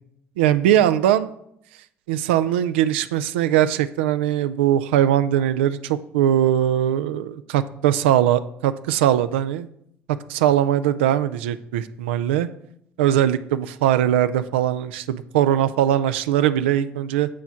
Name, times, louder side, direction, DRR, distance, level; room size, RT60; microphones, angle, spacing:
voice 1, 0.4-1.3 2.1-9.7 10.3-12.5 13.0-17.3, right 11 dB, 90° right, 13 dB, 0.4 m, -20 dB
8.5 x 4.5 x 5.6 m, 0.74 s
hypercardioid pair, 65°, 6 cm